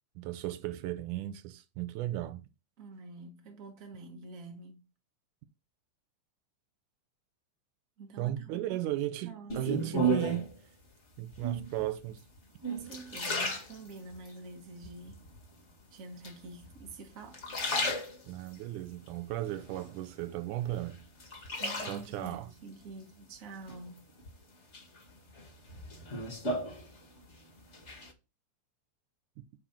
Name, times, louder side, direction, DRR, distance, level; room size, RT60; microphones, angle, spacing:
voice 1, 0.2-2.4 8.2-10.6 11.2-12.2 18.3-21.0 21.8-22.5, right 14 dB, 90° right, 2.3 m, -35 dB
voice 2, 2.8-4.9 8.0-8.8 9.2-10.0 12.7-15.2 15.9-17.4 21.6-24.0, right 3 dB, 35° right, 1.4 m, -47 dB
sound 1, 9.5-10.6 11.3-11.8 12.4-14.3 14.8-15.4 16.2-16.9 17.2-18.6 19.1-20.3 20.7-22.3 23.7-24.3 24.7-27.3 27.6-28.1, right 1 dB, 30° left, 1.4 m, -34 dB
8.8 x 4.0 x 5.9 m
omnidirectional pair, 3.5 m